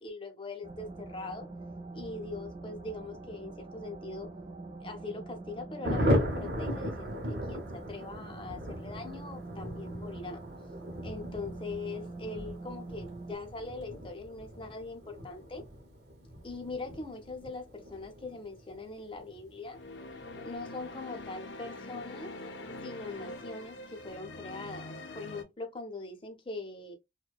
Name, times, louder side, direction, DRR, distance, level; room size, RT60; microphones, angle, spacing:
voice 1, 0.0-1.5 1.9-4.3 4.8-10.4 11.0-15.6 16.4-19.8 20.4-22.3 22.8-26.9, left 3 dB, 30° left, 0.6 m, -42 dB
sound 1, 0.6-13.4, right 2 dB, 30° right, 0.4 m, -45 dB
Thunder, 5.8-21.9 22.2-22.3 22.6-22.7 23.0-23.4, equal, 70° right, 0.8 m, -37 dB
sound 2, 19.6-25.4, left 2 dB, 85° left, 0.5 m, -44 dB
2.6 x 2.1 x 2.3 m
head